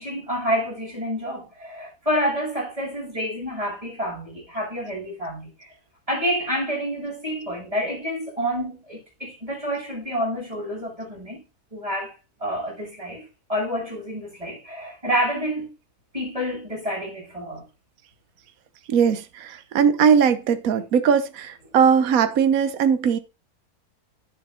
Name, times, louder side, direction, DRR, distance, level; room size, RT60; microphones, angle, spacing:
voice 1, 0.0-5.7 6.1-11.4 11.7-12.1 12.4-13.2 13.5-15.7 16.1-17.6, equal, 20° right, 7.3 m, -28 dB
voice 2, 18.9-23.2, right 7 dB, 70° right, 1.4 m, -19 dB
10.0 x 7.3 x 3.9 m
omnidirectional pair, 1.6 m